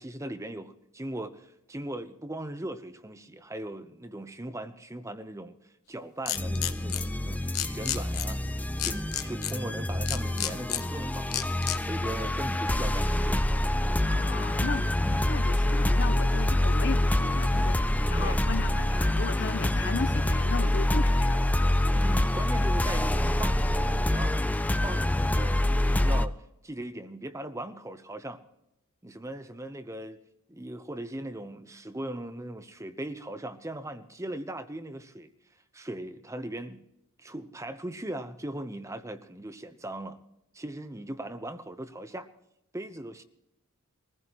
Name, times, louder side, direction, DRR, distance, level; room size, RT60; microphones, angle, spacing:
voice 1, 0.0-5.6 5.9-11.5 11.8-13.6 13.8-14.0 15.0-15.2 18.2-18.4 21.9-24.5 24.8-26.3 26.6-28.4 29.0-30.2 30.5-35.3 35.7-36.8 37.2-40.2 40.5-42.3 42.7-43.2, right 1 dB, 15° right, 0.9 m, -39 dB
sound 1, 6.3-7.0 7.5-8.2 8.8-9.5 10.1-10.8 11.3-11.8, left 13 dB, 75° left, 1.0 m, -30 dB
sound 2, 6.4-26.3, left 1 dB, 5° left, 0.4 m, -26 dB
voice 2, 14.1-14.9 15.3-21.6, left 4 dB, 50° left, 0.6 m, -36 dB
23.0 x 15.5 x 3.0 m
head